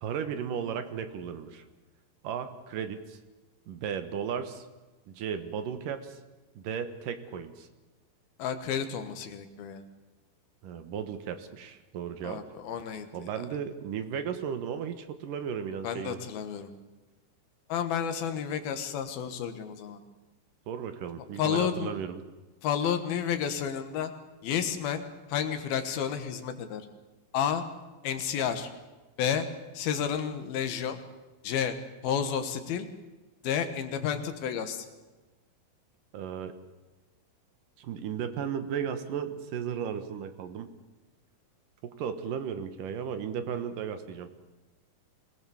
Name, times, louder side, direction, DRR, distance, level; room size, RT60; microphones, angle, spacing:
voice 1, 0.0-1.7 2.2-3.2 3.7-4.7 5.1-6.2 6.6-7.7 10.6-12.4 13.1-16.2 20.7-22.2 36.1-36.6 37.8-40.7 41.8-44.3, right 7 dB, 65° right, 9 dB, 2.5 m, -35 dB
voice 2, 8.4-9.8 12.2-13.1 15.8-16.7 17.7-20.0 21.4-21.9 22.6-24.1 24.4-25.0 25.3-26.8 27.3-27.6 28.0-28.7 29.2-29.5 29.7-31.0 31.4-31.8 32.0-32.9 33.4-34.9, left 8 dB, 70° left, 8 dB, 3.1 m, -31 dB
24.5 x 18.0 x 7.1 m, 1.2 s
omnidirectional pair, 4.7 m